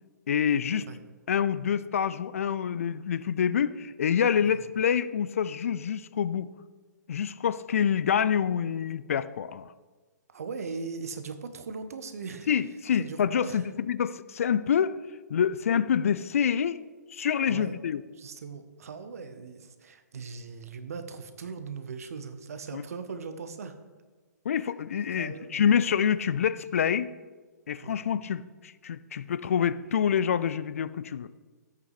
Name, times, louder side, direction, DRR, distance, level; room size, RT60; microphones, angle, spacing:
voice 1, 0.3-0.9 1.3-6.5 7.1-9.7 12.5-15.0 15.3-16.8 17.1-18.0 22.7-22.8 24.4-27.1 27.7-31.3, left 8 dB, 50° left, 16 dB, 0.4 m, -27 dB
voice 2, 10.3-12.5 13.0-13.7 17.5-17.8 18.2-23.8 25.2-25.6 27.8-28.0, right 5 dB, 55° right, 9 dB, 1.1 m, -39 dB
14.5 x 8.4 x 3.3 m, 1.4 s
figure-of-eight pair, 125°, 10 cm